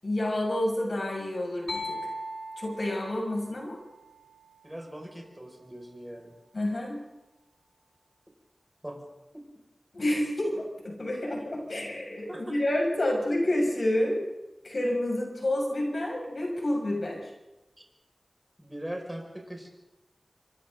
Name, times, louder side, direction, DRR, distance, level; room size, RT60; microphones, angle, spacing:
voice 1, 0.0-2.0 2.6-3.8 6.5-7.0 9.9-14.2 14.6-17.3, left 1 dB, 70° left, 0 dB, 6.8 m, -29 dB
sound 1, 1.7-5.4, left 1 dB, 90° left, 4.5 m, -40 dB
voice 2, 4.6-6.3 8.8-9.0 9.3-9.5 12.3-12.4 17.8-17.9 18.6-19.7, right 1 dB, 10° right, 1 dB, 6.1 m, -40 dB
26.0 x 24.5 x 4.0 m, 1.0 s
wide cardioid pair, 50°, 0 cm